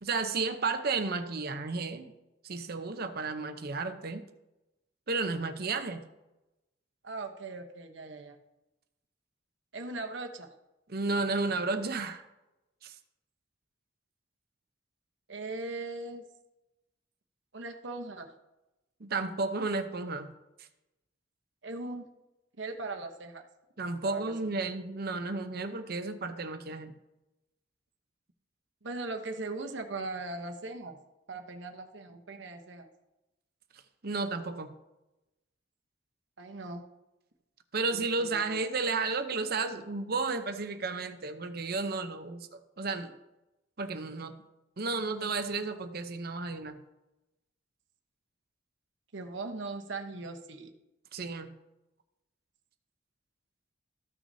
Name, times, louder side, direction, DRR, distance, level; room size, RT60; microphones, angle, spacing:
voice 1, 0.0-2.1 2.4-4.2 5.1-6.0 10.9-12.2 12.8-12.9 19.0-20.3 23.8-26.9 34.0-34.7 37.7-43.1 43.8-44.4 44.8-46.8 51.1-51.5, right 3 dB, 55° right, 8 dB, 0.8 m, -32 dB
voice 2, 7.0-8.4 9.7-10.5 15.3-16.2 17.5-18.3 21.6-22.0 22.6-23.4 24.0-24.3 28.8-31.0 31.3-32.9 36.4-36.8 37.9-38.6 49.1-50.7, right 3 dB, 80° right, 5 dB, 1.0 m, -39 dB
14.5 x 6.1 x 2.7 m, 0.96 s
head